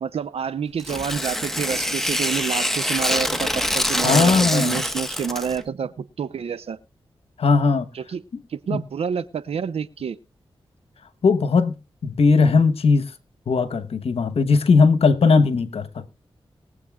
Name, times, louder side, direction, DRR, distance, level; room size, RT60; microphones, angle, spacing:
voice 1, 0.0-6.8 7.9-8.2 8.5-10.2, right 7 dB, 80° right, 0.7 m, -28 dB
Tearing, 0.8-5.6, equal, 5° left, 1.3 m, -25 dB
voice 2, 4.0-4.8 7.4-7.9 8.7-8.8 11.2-11.7 12.0-13.1 13.5-16.1, left 4 dB, 75° left, 1.1 m, -18 dB
22.0 x 7.9 x 2.4 m
cardioid pair, 55°, 10 cm